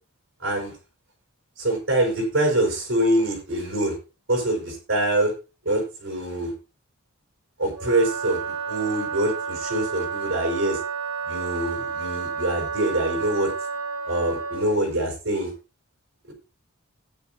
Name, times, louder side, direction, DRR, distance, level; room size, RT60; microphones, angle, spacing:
voice 1, 0.4-0.7 1.6-3.9 4.3-5.3 5.7-6.5 7.6-8.4 8.7-10.8 11.3-13.5 14.0-15.5, right 1 dB, 60° right, 2 dB, 5.4 m, -24 dB
Wind instrument woodwind instrument, 7.7-14.8, right 6 dB, 85° right, 2.8 m, -31 dB
14.5 x 10.0 x 2.8 m, 0.30 s
head